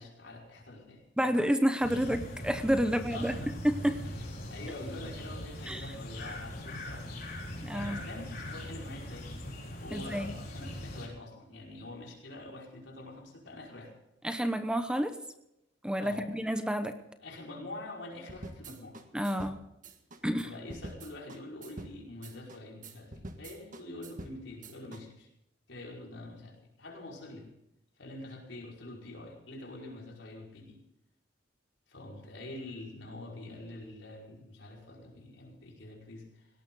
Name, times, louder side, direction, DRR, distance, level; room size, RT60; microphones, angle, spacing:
voice 1, 0.0-1.3 1.9-2.0 2.9-3.6 4.0-4.2 4.5-9.3 9.8-13.9 16.0-16.3 17.2-19.0 20.4-25.3 25.7-27.5 28.0-30.8 31.9-36.5, left 2 dB, 80° left, -1 dB, 5.1 m, -46 dB
voice 2, 1.2-3.4 3.6-4.0 5.7-5.8 7.6-8.0 9.9-10.3 14.2-15.1 15.8-16.9 19.1-19.6 20.2-20.5, equal, 5° right, 8 dB, 0.9 m, -29 dB
sound 1, 1.8-11.1, left 1 dB, 55° left, 4.3 m, -41 dB
sound 2, 18.3-25.0, right 1 dB, 45° right, 1.7 m, -46 dB
18.0 x 18.0 x 3.9 m, 0.84 s
head